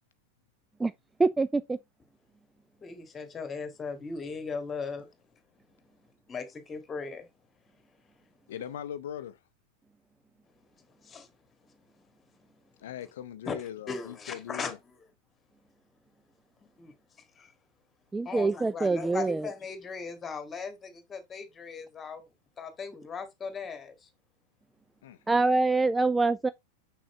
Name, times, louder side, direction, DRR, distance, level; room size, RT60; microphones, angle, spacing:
voice 1, 1.2-1.8 18.1-19.5 25.3-26.5, right 3 dB, 10° right, 0.3 m, -25 dB
voice 2, 2.8-5.1 6.3-7.3 11.0-11.3 13.5-14.7 16.8-16.9 17.4-17.5 18.3-22.3 22.6-24.1, left 5 dB, 20° left, 1.9 m, -38 dB
voice 3, 8.5-9.4 12.8-14.8 25.0-25.2, left 10 dB, 60° left, 0.5 m, -40 dB
6.9 x 6.2 x 3.2 m
figure-of-eight pair, 90°, 0 cm